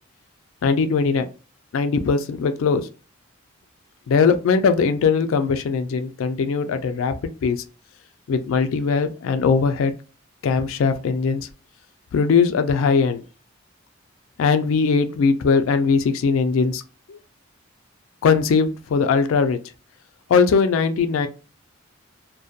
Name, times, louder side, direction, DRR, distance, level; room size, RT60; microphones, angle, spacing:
voice 1, 0.6-1.3 1.7-2.9 4.1-7.6 8.3-9.9 10.4-11.5 12.1-13.2 14.4-16.8 17.1-17.2 18.2-19.6 20.3-21.3, left 5 dB, 80° left, 0.3 m, -20 dB
2.6 x 2.1 x 2.3 m
head